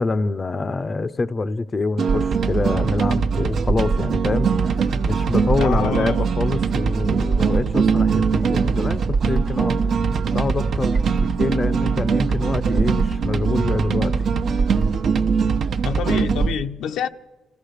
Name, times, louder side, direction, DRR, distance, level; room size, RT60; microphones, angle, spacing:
voice 1, 0.0-10.0 10.3-14.3, left 3 dB, 30° left, 0.7 m, -26 dB
sound 1, 2.0-16.5, right 5 dB, 60° right, 1.0 m, -21 dB
voice 2, 5.6-6.2 15.8-17.1, left 8 dB, 80° left, 0.9 m, -26 dB
26.5 x 15.0 x 6.7 m
cardioid pair, 90°, 0 cm